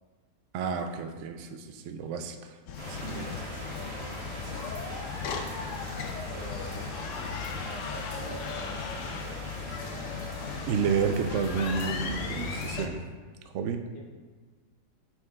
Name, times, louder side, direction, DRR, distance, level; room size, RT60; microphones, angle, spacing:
voice 1, 0.5-2.6 2.9-3.3 10.7-13.0 13.5-13.8, right 6 dB, 90° right, 6 dB, 0.6 m, -30 dB
sound 1, 2.7-12.9, left 5 dB, 75° left, 0.7 m, -36 dB
sound 2, 2.8-12.7, right 1 dB, 55° right, 2.1 m, -43 dB
voice 2, 3.2-4.0 6.3-10.6 13.9-14.0, equal, 35° left, -3 dB, 1.0 m, -46 dB
7.5 x 5.8 x 2.2 m, 1.4 s
omnidirectional pair, 1.9 m